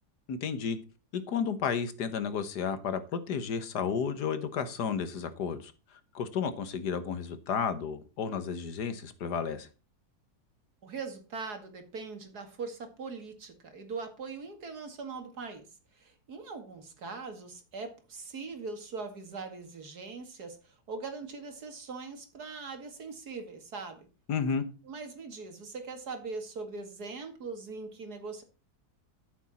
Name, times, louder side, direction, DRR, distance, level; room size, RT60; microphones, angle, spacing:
voice 1, 0.3-0.8 1.1-5.7 6.1-9.7 24.3-24.7, left 6 dB, 90° left, 1.8 m, -32 dB
voice 2, 10.8-15.7 15.9-24.1 24.8-28.4, right 4 dB, 75° right, 2.7 m, -41 dB
13.5 x 7.2 x 4.3 m
omnidirectional pair, 1.7 m